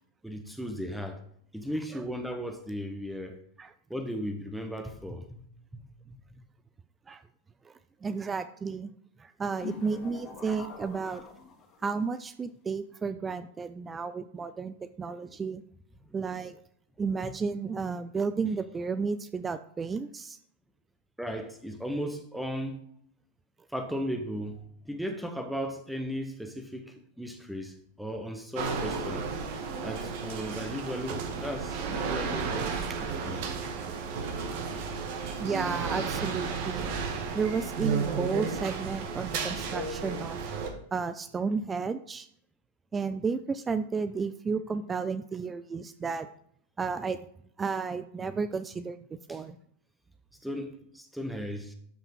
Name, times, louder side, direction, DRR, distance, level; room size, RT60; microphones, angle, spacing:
voice 1, 0.2-1.2 1.5-3.4 3.9-5.4 5.7-5.8 16.0-16.1 21.2-22.8 23.7-29.3 29.8-33.7 49.3-49.4 50.4-51.7, equal, ahead, 5 dB, 1.2 m, -36 dB
voice 2, 8.0-8.9 9.2-11.2 11.8-15.6 16.1-16.6 17.0-20.4 35.4-36.9 37.3-40.4 40.9-42.3 42.9-46.3 46.8-47.2 47.6-49.0 49.3-49.6, right 5 dB, 15° right, 13 dB, 0.5 m, -32 dB
sound 1, 9.6-12.0, left 5 dB, 30° left, 2.1 m, -43 dB
sound 2, 28.5-40.7, right 5 dB, 45° right, 1.8 m, -33 dB
13.0 x 5.7 x 5.5 m, 0.67 s
figure-of-eight pair, 90°, 0 cm